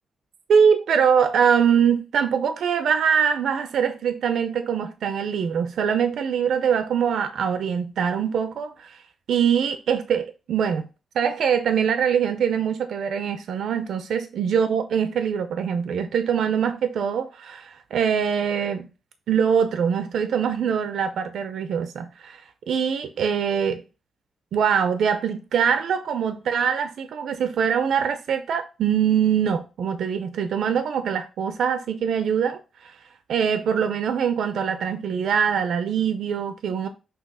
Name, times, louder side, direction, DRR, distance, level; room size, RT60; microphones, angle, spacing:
voice 1, 0.5-9.0 9.3-10.8 11.1-18.9 19.3-22.4 22.7-23.8 24.5-32.9 33.3-36.9, right 7 dB, 75° right, 0.5 m, -23 dB
6.0 x 2.8 x 5.5 m
wide cardioid pair, 140°, 0 cm